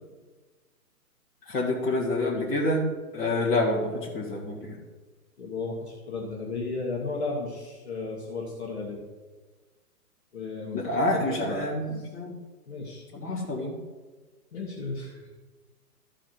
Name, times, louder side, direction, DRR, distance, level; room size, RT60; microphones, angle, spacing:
voice 1, 1.5-2.8 3.1-4.8 10.7-12.3 13.1-13.8, left 1 dB, 25° left, -6 dB, 1.9 m, -27 dB
voice 2, 5.4-9.0 10.3-11.7 11.9-12.0 12.7-13.0 13.3-13.4 14.5-15.3, left 3 dB, 45° left, -3 dB, 1.5 m, -34 dB
13.0 x 4.9 x 4.5 m, 1.3 s
hypercardioid pair, 180°, 47 cm